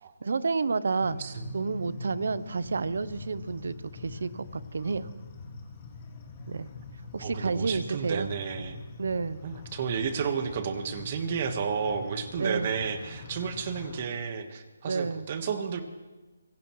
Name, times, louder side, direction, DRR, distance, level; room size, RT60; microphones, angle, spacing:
voice 1, 0.2-1.2 1.5-5.1 6.5-6.7 7.1-8.3 9.0-9.4 12.4-12.7 14.8-15.3, right 4 dB, 65° right, 17 dB, 0.7 m, -30 dB
sound 1, 1.0-14.1, left 3 dB, 25° left, 2.0 m, -44 dB
voice 2, 7.2-8.8 9.4-15.8, right 6 dB, 35° right, 8 dB, 1.4 m, -32 dB
25.0 x 17.0 x 3.2 m, 1.2 s
hypercardioid pair, 165°, 0 cm